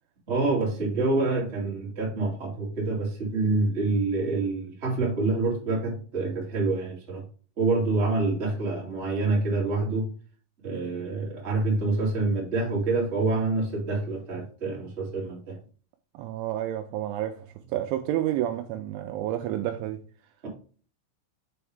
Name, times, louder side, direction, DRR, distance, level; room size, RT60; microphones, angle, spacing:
voice 1, 0.3-7.2 7.6-10.1 10.6-15.6 20.4-20.5, right 3 dB, 40° right, 0.9 m, -27 dB
voice 2, 16.1-20.0, right 12 dB, 85° right, 2.8 m, -30 dB
7.1 x 4.7 x 3.3 m
omnidirectional pair, 5.8 m